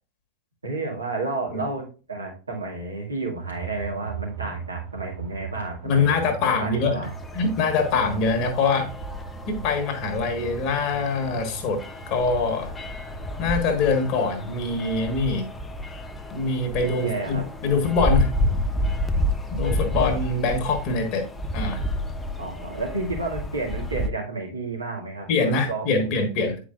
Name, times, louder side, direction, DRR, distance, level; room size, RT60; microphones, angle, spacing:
voice 1, 0.6-7.1 17.0-17.4 22.4-26.1, right 3 dB, 80° right, 2.0 m, -31 dB
sound 1, 3.4-16.3, right 8 dB, 35° right, 2.1 m, -40 dB
voice 2, 5.8-7.1 7.3-8.9 9.5-12.7 13.4-15.4 16.3-18.3 19.5-21.2 21.5-21.8 25.3-26.6, left 4 dB, 40° left, 1.4 m, -24 dB
sound 2, 7.0-24.1, left 1 dB, 10° left, 0.5 m, -30 dB
9.1 x 4.8 x 2.4 m
figure-of-eight pair, 90°, 0 cm